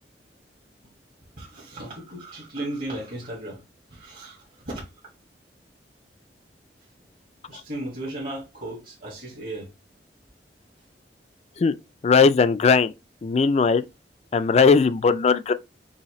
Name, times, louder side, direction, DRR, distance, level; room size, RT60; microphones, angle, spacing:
voice 1, 1.4-3.6 3.9-4.9 7.5-9.7, right 1 dB, 55° right, 1.6 m, -35 dB
voice 2, 12.0-12.9 13.2-13.9 14.3-15.5, left 5 dB, 35° left, 0.3 m, -18 dB
5.6 x 2.7 x 3.0 m
head